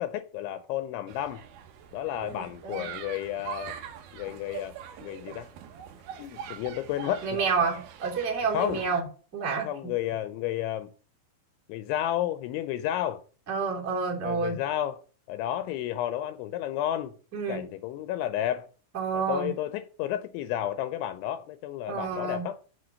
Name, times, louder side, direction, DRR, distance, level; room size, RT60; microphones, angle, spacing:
voice 1, 0.0-1.4 1.9-3.8 4.1-5.5 6.2-7.4 8.5-8.8 9.5-10.9 11.7-13.2 14.2-15.0 15.3-17.1 17.5-18.7 19.1-22.6, left 12 dB, 80° left, 2.9 m, -32 dB
sound 1, 1.1-9.0, right 9 dB, 75° right, 2.3 m, -43 dB
voice 2, 2.2-2.9 7.2-9.0 9.3-9.9 13.5-14.6 17.3-17.6 18.9-19.5 21.9-22.4, right 5 dB, 20° right, 2.3 m, -29 dB
7.7 x 6.3 x 6.3 m
omnidirectional pair, 5.7 m